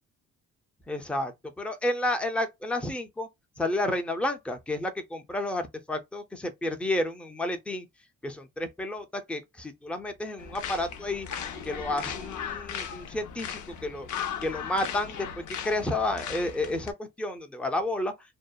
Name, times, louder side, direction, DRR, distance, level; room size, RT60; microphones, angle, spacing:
voice 1, 0.9-3.3 3.6-7.9 8.2-11.3 11.6-14.1 14.4-18.1, left 1 dB, 5° left, 0.5 m, -31 dB
sound 1, 10.4-16.9, left 8 dB, 75° left, 0.6 m, -37 dB
2.7 x 2.1 x 2.3 m
cardioid pair, 90°, 30 cm